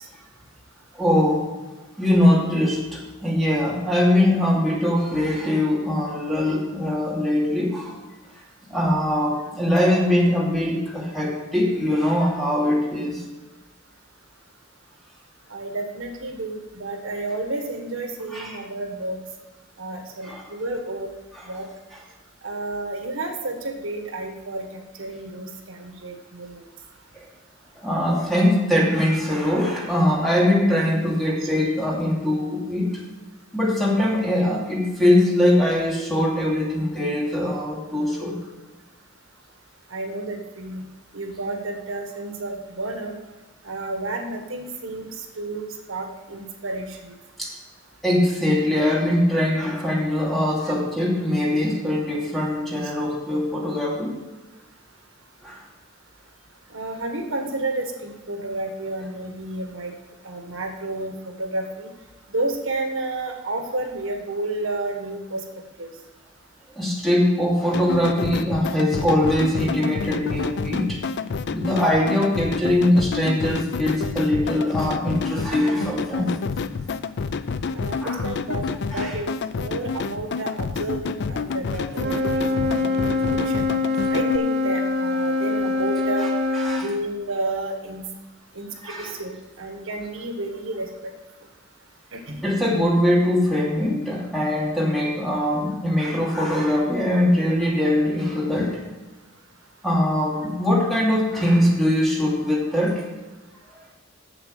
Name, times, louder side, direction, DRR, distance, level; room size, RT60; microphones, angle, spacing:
voice 1, 0.9-1.5 2.0-8.0 8.7-13.2 18.3-18.5 20.2-20.4 21.3-21.4 27.1-27.3 27.8-32.9 33.5-38.4 47.4-47.5 48.0-54.1 55.4-55.6 66.7-71.0 71.5-76.3 78.0-78.2 78.9-79.1 86.6-86.9 88.8-89.1 92.4-98.8 99.8-103.0, left 1 dB, ahead, -5 dB, 2.7 m, -22 dB
voice 2, 15.5-19.2 19.8-21.1 21.5-21.7 22.4-26.6 31.4-31.5 39.9-40.9 41.1-43.1 43.6-47.1 56.7-59.9 60.2-61.9 62.3-65.4 65.8-65.9 77.7-78.6 78.9-83.7 84.1-86.3 86.8-88.0 88.5-90.9 92.1-92.5, right 2 dB, 80° right, 3 dB, 1.5 m, -31 dB
sound 1, 67.7-84.4, left 5 dB, 60° left, 0.4 m, -29 dB
Wind instrument woodwind instrument, 81.9-86.9, left 3 dB, 55° right, 1.4 m, -24 dB
8.0 x 7.5 x 6.6 m, 1.2 s
head